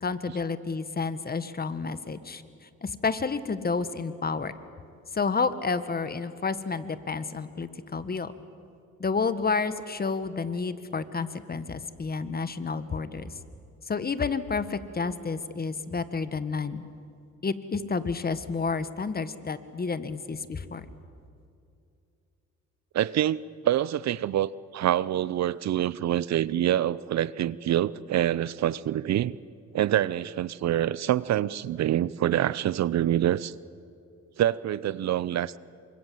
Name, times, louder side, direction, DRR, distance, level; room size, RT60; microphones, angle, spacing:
voice 1, 0.0-2.4 2.8-4.5 5.1-8.3 9.0-13.3 13.9-16.8 17.4-20.8, left 4 dB, 30° left, 12 dB, 1.6 m, -30 dB
voice 2, 22.9-29.4 29.7-33.5 34.4-35.6, right 12 dB, 60° right, 20 dB, 0.7 m, -26 dB
28.0 x 25.0 x 7.8 m, 2.5 s
cardioid pair, 90°, 30 cm